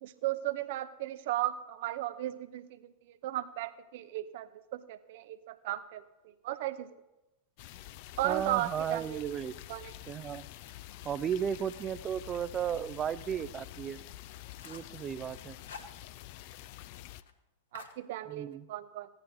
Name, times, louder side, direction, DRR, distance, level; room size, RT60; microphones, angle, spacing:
voice 1, 0.0-6.0 6.4-6.9 8.2-9.2 9.7-9.9 17.7-19.1, right 14 dB, 50° right, 13 dB, 0.8 m, -35 dB
sound 1, 7.6-17.2, left 14 dB, 45° left, 0.5 m, -48 dB
voice 2, 8.2-9.5 10.1-10.5 11.0-14.0 14.6-15.6 18.3-18.7, right 8 dB, 25° right, 17 dB, 0.5 m, -34 dB
sound 2, 8.5-9.4 9.8-13.1 13.4-13.5 13.9-14.0 14.3-15.0 15.4-16.5 16.7-16.8 17.1-17.4 17.7-18.6, left 5 dB, 65° left, 1.4 m, -54 dB
16.0 x 10.5 x 4.0 m, 0.99 s
figure-of-eight pair, 90°, 0 cm